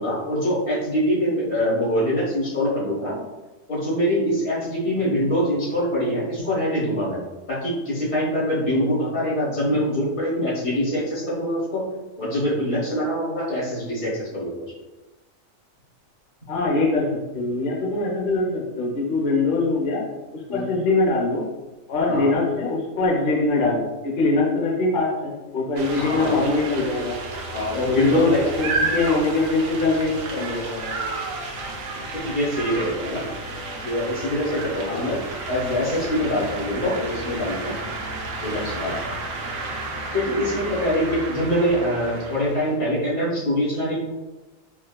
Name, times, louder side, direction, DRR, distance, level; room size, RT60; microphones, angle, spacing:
voice 1, 0.0-3.1 3.7-7.2 7.5-11.8 12.2-14.6 20.5-20.7 22.1-22.3 25.9-26.4 27.5-29.0 32.1-33.2 33.8-35.2 35.5-37.8 38.4-39.0 40.1-44.1, equal, 70° left, -8 dB, 1.8 m, -24 dB
voice 2, 16.5-17.1 17.3-20.0 20.3-21.4 21.9-27.2 27.9-28.3 28.6-30.9 34.9-35.1, left 3 dB, 50° left, -2 dB, 0.6 m, -23 dB
sound 1, 25.8-42.8, right 2 dB, 80° right, 1.0 m, -31 dB
4.6 x 2.1 x 2.2 m, 1.1 s
omnidirectional pair, 1.4 m